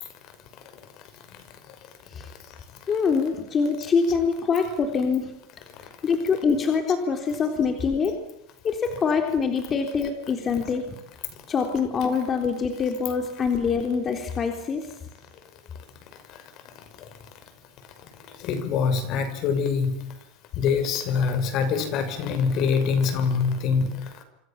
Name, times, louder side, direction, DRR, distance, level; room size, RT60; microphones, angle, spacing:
voice 1, 2.9-5.4 6.0-8.1 8.6-10.9 11.5-14.9, left 5 dB, 25° left, 4 dB, 3.5 m, -24 dB
voice 2, 18.4-20.0 20.6-23.9, left 5 dB, 50° left, 10 dB, 5.7 m, -24 dB
27.0 x 26.5 x 7.4 m, 0.79 s
supercardioid pair, 140°, 0 cm